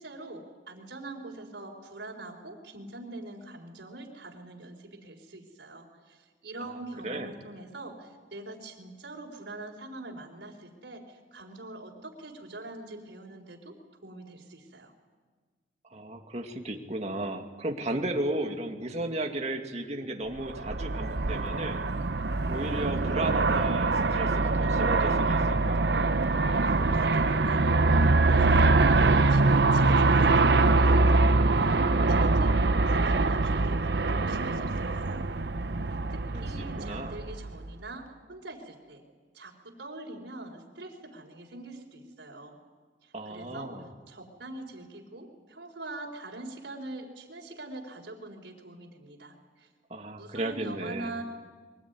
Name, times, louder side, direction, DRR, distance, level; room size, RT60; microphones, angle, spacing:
voice 1, 0.0-13.7 14.0-14.9 26.5-35.2 36.1-38.0 38.3-39.0 39.3-42.6 43.0-43.7 44.1-49.7 50.2-51.2, right 2 dB, 90° right, -2 dB, 4.3 m, -43 dB
voice 2, 15.9-21.8 22.5-25.8 36.0-37.2 43.1-43.9 49.9-51.1, right 1 dB, 40° right, 3 dB, 2.3 m, -35 dB
Aircraft, 20.4-37.7, right 3 dB, 70° right, 0.9 m, -24 dB
23.5 x 19.5 x 9.7 m, 1.5 s
head